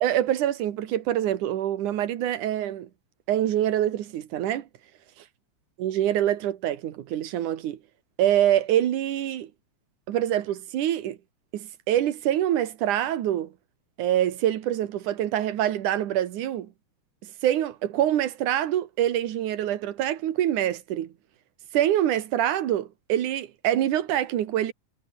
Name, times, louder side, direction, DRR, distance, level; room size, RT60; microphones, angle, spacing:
voice 1, 0.0-2.9 3.3-4.7 5.2-5.3 5.8-7.8 8.2-9.5 10.1-11.2 11.5-13.5 14.0-16.7 17.2-21.1 21.7-24.7, right 12 dB, 70° right, 3.0 m, -25 dB
omnidirectional pair, 3.7 m